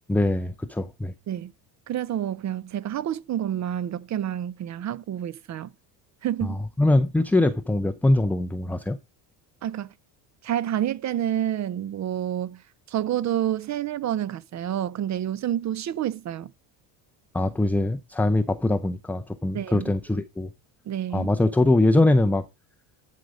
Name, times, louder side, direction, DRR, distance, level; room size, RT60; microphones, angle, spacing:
voice 1, 0.1-1.1 6.4-9.0 17.3-20.5 21.1-22.4, left 2 dB, 5° left, 0.4 m, -22 dB
voice 2, 1.9-5.7 6.2-6.6 9.6-9.9 10.4-12.6 12.9-16.5 19.5-19.9 20.9-21.3, right 11 dB, 40° right, 0.6 m, -28 dB
11.0 x 5.0 x 5.1 m
cardioid pair, 125°, 46 cm